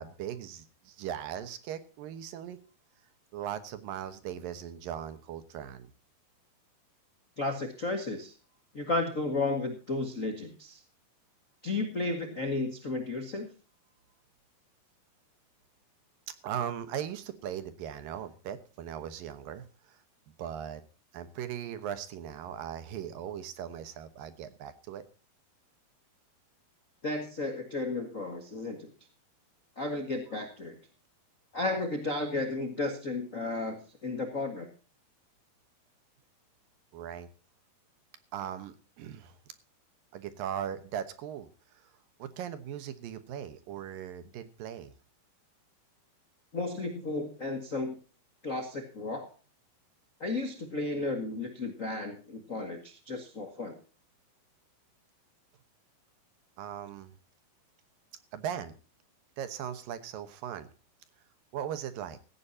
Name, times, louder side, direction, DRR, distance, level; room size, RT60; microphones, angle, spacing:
voice 1, 0.0-2.6 3.3-5.9 16.3-20.0 20.4-20.8 21.1-25.0 36.9-37.3 38.3-39.4 40.1-41.8 42.2-44.9 56.6-57.1 58.3-58.7 59.4-60.7 61.5-62.2, right 9 dB, 70° right, 11 dB, 2.7 m, -39 dB
voice 2, 7.4-8.3 8.7-10.8 11.6-13.5 27.0-28.9 29.8-30.8 31.5-34.7 46.5-48.0 48.4-49.3 50.2-53.8, left 2 dB, 45° left, 4 dB, 1.0 m, -33 dB
16.5 x 15.0 x 2.8 m, 0.35 s
omnidirectional pair, 4.3 m